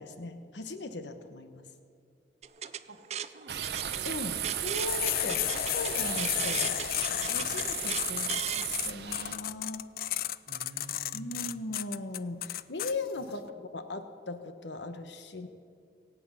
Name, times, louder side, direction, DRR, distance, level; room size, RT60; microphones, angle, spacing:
voice 1, 0.0-1.6 4.0-9.8 11.1-13.4 13.7-15.5, left 2 dB, 85° left, 8 dB, 1.1 m, -39 dB
sound 1, 2.4-8.7, right 9 dB, 35° right, 0.4 m, -38 dB
voice 2, 2.9-3.9 10.5-11.6 13.3-13.6, right 1 dB, 90° right, 7 dB, 1.2 m, -51 dB
sound 2, 3.5-9.4, right 10 dB, 70° right, 0.7 m, -36 dB
sound 3, 4.8-12.9, left 13 dB, 55° left, 0.3 m, -32 dB
23.5 x 8.5 x 5.6 m, 2.2 s
head